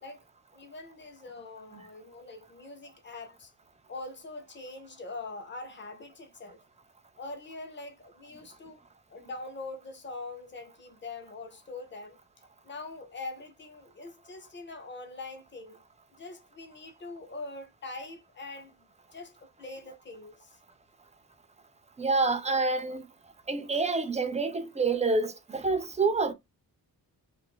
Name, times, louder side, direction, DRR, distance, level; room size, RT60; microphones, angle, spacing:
voice 1, 0.5-3.5 3.9-6.6 7.2-8.8 9.1-12.2 12.6-15.8 16.1-18.7 19.1-20.6, left 3 dB, 30° left, 0.7 m, -43 dB
voice 2, 22.0-23.1 23.5-26.3, right 3 dB, 20° right, 0.3 m, -27 dB
2.5 x 2.5 x 2.9 m
wide cardioid pair, 150°, 38 cm